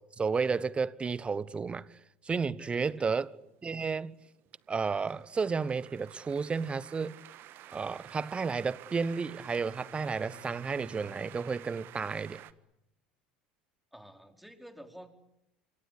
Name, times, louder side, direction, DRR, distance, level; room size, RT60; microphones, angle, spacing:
voice 1, 0.0-1.9 2.2-3.3 3.6-4.1 4.7-7.2 7.7-12.4, right 5 dB, 25° right, 1.0 m, -32 dB
voice 2, 2.6-3.1 13.9-15.1, right 1 dB, ahead, 4.3 m, -50 dB
sound 1, 3.2-12.5, right 14 dB, 50° right, 1.5 m, -52 dB
Bowed string instrument, 9.1-12.7, left 9 dB, 85° left, 7.6 m, -56 dB
26.5 x 25.0 x 8.5 m
hypercardioid pair, 70°, 5 cm